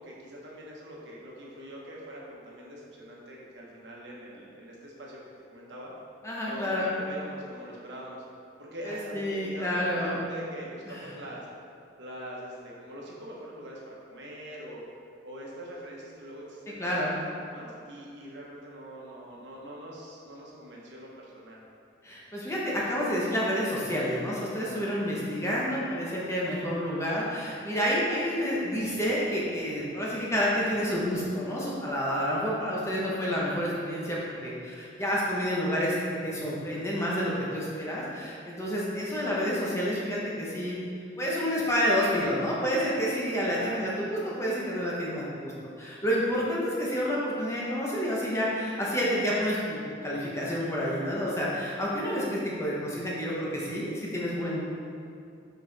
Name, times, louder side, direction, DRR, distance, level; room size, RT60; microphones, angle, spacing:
voice 1, 0.0-5.2 5.5-5.9 6.4-8.2 8.6-11.5 12.0-14.8 15.2-17.0 17.4-21.6 43.5-43.9, equal, 70° right, -4 dB, 1.1 m, -43 dB
voice 2, 6.2-6.9 8.9-10.2 10.9-11.0 16.8-17.1 22.0-40.8 41.2-54.6, equal, 15° left, -6 dB, 0.8 m, -29 dB
5.4 x 4.5 x 3.9 m, 2.5 s
head